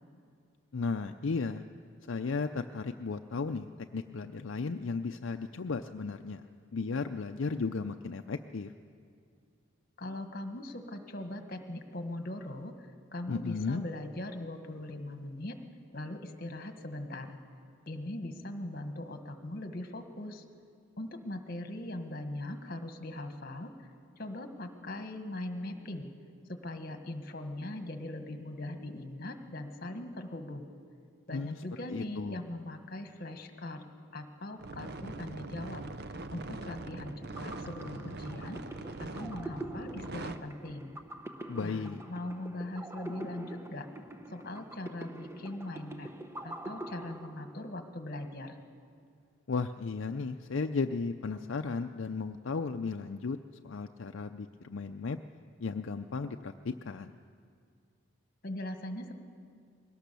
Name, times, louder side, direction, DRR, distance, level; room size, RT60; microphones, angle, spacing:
voice 1, 0.7-1.6 2.1-6.4 6.7-8.7 13.3-13.8 31.3-31.6 31.9-32.4 41.5-42.0 49.5-53.4 53.6-55.2 55.6-57.1, left 4 dB, 70° left, 6 dB, 0.5 m, -35 dB
voice 2, 10.0-15.6 15.9-17.4 17.9-20.4 21.0-23.7 24.2-26.1 26.5-30.7 31.3-33.8 34.1-35.8 36.3-38.6 39.0-41.0 41.6-43.9 44.3-46.1 46.4-48.6 58.4-59.2, left 1 dB, 45° left, 6 dB, 1.5 m, -40 dB
sound 1, 34.6-40.4, right 2 dB, 50° right, 0.7 m, -42 dB
sound 2, 37.1-47.9, right 1 dB, 10° right, 0.8 m, -45 dB
21.5 x 18.0 x 6.9 m, 2.3 s
head